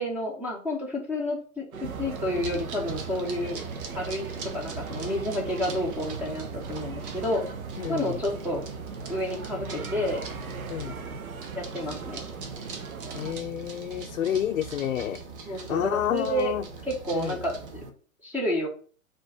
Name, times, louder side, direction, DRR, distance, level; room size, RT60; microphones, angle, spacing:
voice 1, 0.0-3.6 3.9-7.4 7.9-8.6 9.1-10.2 11.6-12.2 15.5-16.5 16.8-17.6 18.2-18.7, left 1 dB, 5° right, -1 dB, 0.5 m, -30 dB
sound 1, 1.7-13.3, right 6 dB, 85° right, 0.7 m, -40 dB
sound 2, 1.8-17.9, right 4 dB, 40° right, 0.9 m, -39 dB
voice 2, 7.8-8.2 10.7-10.9 13.1-15.2 15.7-16.6 17.1-17.4, left 10 dB, 75° left, 5 dB, 0.5 m, -29 dB
4.3 x 2.6 x 4.3 m, 0.42 s
figure-of-eight pair, 115°, 41 cm